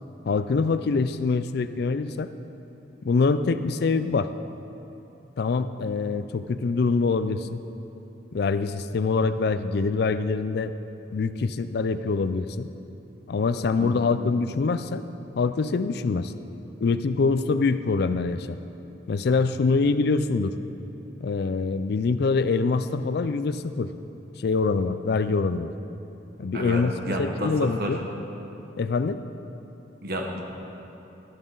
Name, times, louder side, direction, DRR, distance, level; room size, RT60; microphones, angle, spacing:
voice 1, 0.3-2.3 3.0-4.3 5.4-7.6 8.3-10.7 11.1-12.7 13.3-15.0 15.4-16.3 16.8-18.6 19.1-20.5 21.2-23.9 24.4-25.7 26.4-28.0 28.8-29.2, left 4 dB, 60° left, 11 dB, 0.4 m, -24 dB
voice 2, 26.5-27.9 30.0-30.4, equal, 60° right, 1 dB, 1.4 m, -30 dB
12.5 x 11.0 x 3.9 m, 2.9 s
head